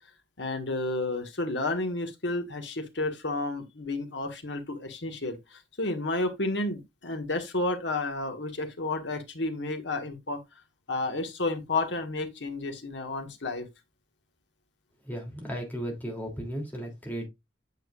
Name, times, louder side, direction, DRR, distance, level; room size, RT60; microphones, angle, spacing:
voice 1, 0.4-10.4 10.9-13.7, left 2 dB, 80° left, 1.7 m, -31 dB
voice 2, 15.0-17.3, equal, 10° left, 3.0 m, -35 dB
9.1 x 6.7 x 2.5 m
head